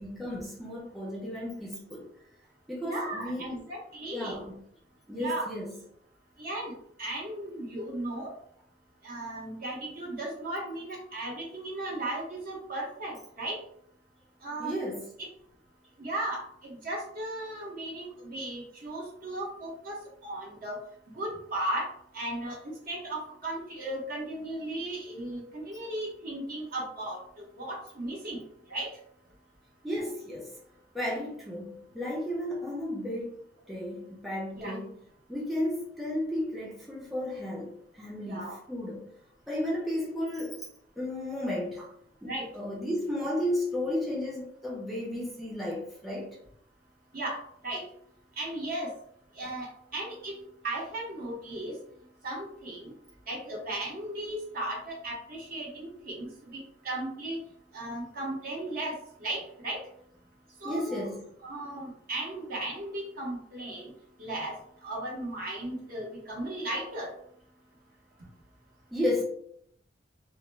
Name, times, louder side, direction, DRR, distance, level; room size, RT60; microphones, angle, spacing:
voice 1, 0.0-2.1 2.7-3.6 4.1-4.6 5.1-5.7 14.6-15.1 29.8-30.5 30.9-33.3 33.7-35.0 35.3-39.0 39.5-40.7 41.0-41.9 42.2-46.4 60.6-61.2 68.9-69.2, left 1 dB, ahead, 0.5 m, -33 dB
voice 2, 2.8-4.4 5.1-5.5 6.4-6.7 7.0-8.3 9.0-13.6 14.4-14.7 16.0-20.0 20.2-20.8 21.1-21.9 22.1-22.6 22.9-28.4 28.7-28.9 34.5-34.7 38.2-38.5 42.3-42.5 47.1-47.4 47.6-47.8 48.4-48.9 49.4-49.7 49.9-50.3 50.6-51.8 52.2-52.9 53.3-56.6 56.8-57.4 57.7-59.8 60.6-61.1 61.4-63.9 64.2-64.5 64.8-67.1, right 1 dB, 55° right, 0.8 m, -36 dB
2.1 x 2.1 x 3.1 m
head